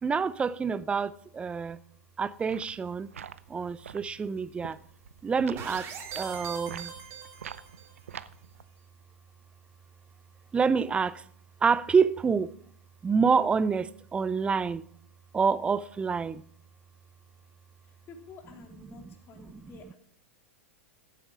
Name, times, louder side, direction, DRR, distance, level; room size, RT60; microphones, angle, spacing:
voice 1, 0.0-1.8 2.2-3.1 3.5-4.8 5.2-6.9 10.5-11.2 11.6-12.5 13.0-14.8 15.3-16.4 18.9-19.1 19.4-19.7, right 5 dB, 15° right, 0.5 m, -27 dB
sound 1, 2.3-8.6, right 8 dB, 85° right, 0.6 m, -46 dB
sound 2, 5.6-8.0, right 7 dB, 35° right, 2.9 m, -41 dB
voice 2, 18.1-19.9, left 4 dB, 35° left, 3.0 m, -50 dB
14.5 x 8.4 x 5.0 m
hypercardioid pair, 110°, 7 cm